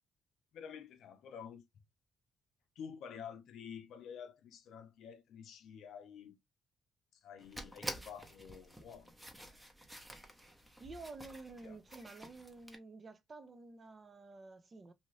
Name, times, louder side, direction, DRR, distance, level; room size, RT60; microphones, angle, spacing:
voice 1, 0.5-1.6 2.8-6.4 7.1-9.6 11.6-11.8, left 7 dB, 75° left, 0.6 m, -50 dB
sound 1, 7.4-12.8, equal, 5° right, 0.9 m, -49 dB
voice 2, 10.8-14.9, right 3 dB, 35° right, 0.6 m, -51 dB
2.8 x 2.4 x 3.1 m
cardioid pair, 90°, 0 cm